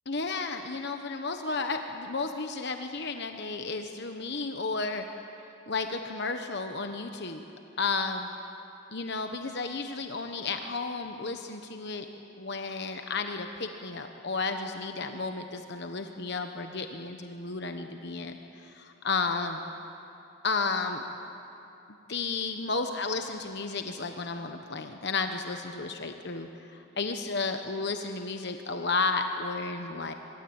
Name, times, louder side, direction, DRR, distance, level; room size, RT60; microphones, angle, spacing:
voice 1, 0.1-5.0 5.7-7.4 7.8-8.3 8.9-12.0 12.4-19.6 20.4-21.0 22.1-30.1, left 4 dB, 50° left, 6 dB, 1.1 m, -33 dB
25.0 x 22.0 x 8.8 m, 2.9 s
head